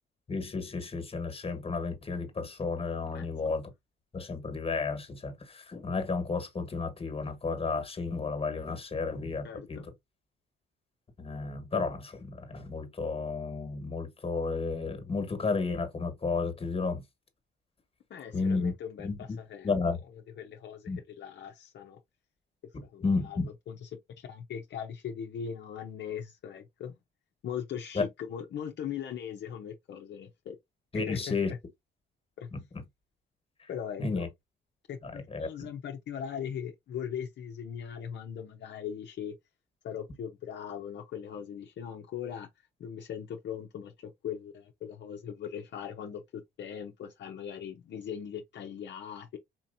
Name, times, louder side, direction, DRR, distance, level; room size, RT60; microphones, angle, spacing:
voice 1, 0.3-3.6 4.1-9.8 11.2-17.0 18.3-18.7 19.0-19.4 19.6-20.0 20.9-21.0 23.0-23.5 27.9-28.0 30.9-31.5 32.5-32.6 34.0-34.3 35.0-35.5, left 4 dB, 30° left, 1.4 m, -32 dB
voice 2, 3.1-3.5 9.4-9.9 18.1-19.7 20.4-22.0 22.8-26.9 27.4-30.6 30.9-31.6 32.4-32.5 33.7-34.3 34.9-39.4 39.8-42.5 42.8-49.4, left 8 dB, 60° left, 0.7 m, -40 dB
4.3 x 2.9 x 2.6 m
cardioid pair, 90°, 20 cm